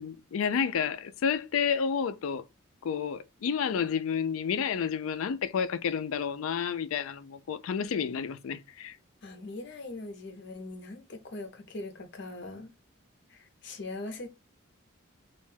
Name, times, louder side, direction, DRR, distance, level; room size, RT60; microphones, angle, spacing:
voice 1, 0.0-2.4 2.8-9.0, left 7 dB, 90° left, 0.4 m, -30 dB
voice 2, 9.2-12.7 13.3-14.3, left 2 dB, 55° left, 0.7 m, -41 dB
2.5 x 2.2 x 3.2 m
head